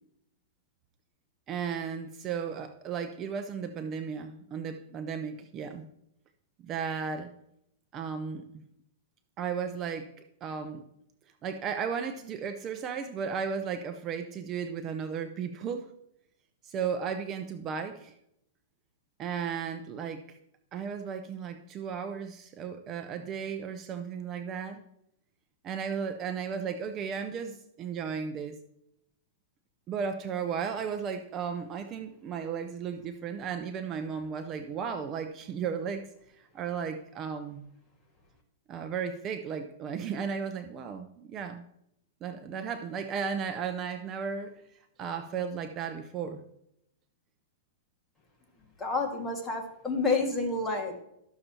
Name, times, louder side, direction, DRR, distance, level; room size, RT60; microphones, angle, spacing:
voice 1, 1.5-5.9 6.6-7.3 7.9-8.5 9.4-10.1 10.4-10.8 11.4-15.9 16.6-18.1 19.2-20.4 20.7-24.8 25.6-28.6 29.9-36.1 36.5-37.7 38.7-41.6 42.2-44.5 45.0-46.4, right 6 dB, 30° right, 8 dB, 0.6 m, -35 dB
voice 2, 48.8-51.0, left 3 dB, 15° left, 0 dB, 1.8 m, -29 dB
12.5 x 6.7 x 2.9 m, 0.77 s
hypercardioid pair, 135°, 0 cm